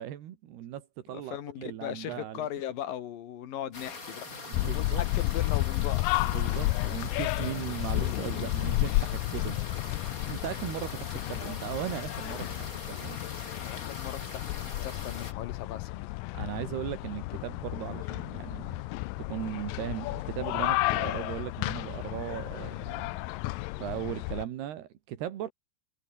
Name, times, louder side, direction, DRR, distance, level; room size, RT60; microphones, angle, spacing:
voice 1, 0.0-2.5 4.4-5.0 6.2-9.6 10.1-13.2 13.5-13.6 16.3-18.8 19.2-23.0 23.8-25.5, right 11 dB, 85° right, 3.9 m, -38 dB
voice 2, 1.1-4.3 4.7-6.1 13.6-14.4 14.8-16.1, left 11 dB, 65° left, 3.5 m, -38 dB
sound 1, 3.7-15.3, left 3 dB, 20° left, 3.3 m, -43 dB
sound 2, 4.5-24.5, left 20 dB, 80° left, 2.0 m, -32 dB
omnidirectional pair, 4.6 m